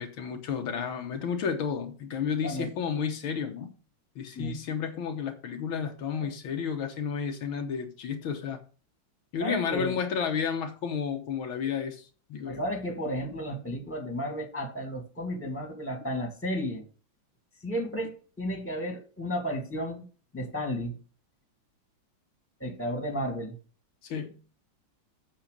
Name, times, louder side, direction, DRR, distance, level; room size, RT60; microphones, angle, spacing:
voice 1, 0.0-3.7 4.2-8.6 9.3-12.6 24.0-24.4, left 6 dB, 75° left, 1.9 m, -32 dB
voice 2, 9.4-10.0 12.4-16.8 17.6-20.1 20.3-21.0 22.6-23.6, equal, 5° left, 2.0 m, -33 dB
7.5 x 6.9 x 5.2 m
omnidirectional pair, 2.3 m